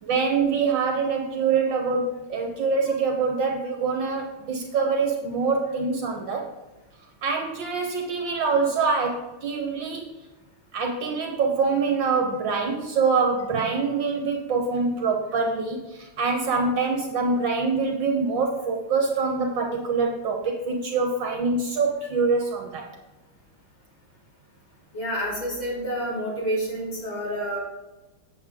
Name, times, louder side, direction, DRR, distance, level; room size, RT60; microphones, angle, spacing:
voice 1, 0.0-6.5 7.2-10.1 10.7-22.9, right 4 dB, 65° right, 2 dB, 1.6 m, -25 dB
voice 2, 24.9-27.6, equal, 70° left, -6 dB, 3.8 m, -28 dB
8.4 x 7.7 x 3.6 m, 1.1 s
omnidirectional pair, 2.3 m